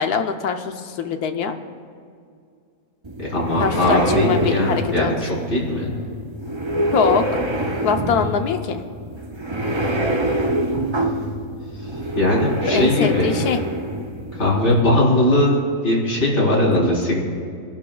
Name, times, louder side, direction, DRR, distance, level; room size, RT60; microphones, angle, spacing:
voice 1, 0.0-1.6 3.6-5.1 6.9-7.2 7.8-8.8 12.7-13.6, left 6 dB, 75° left, 6 dB, 1.3 m, -22 dB
sound 1, 3.0-14.8, right 1 dB, 35° right, 0.4 m, -25 dB
voice 2, 3.2-5.9 12.2-13.3 14.4-17.2, left 1 dB, 40° left, -5 dB, 4.2 m, -19 dB
25.5 x 11.5 x 2.3 m, 2.3 s
omnidirectional pair, 1.7 m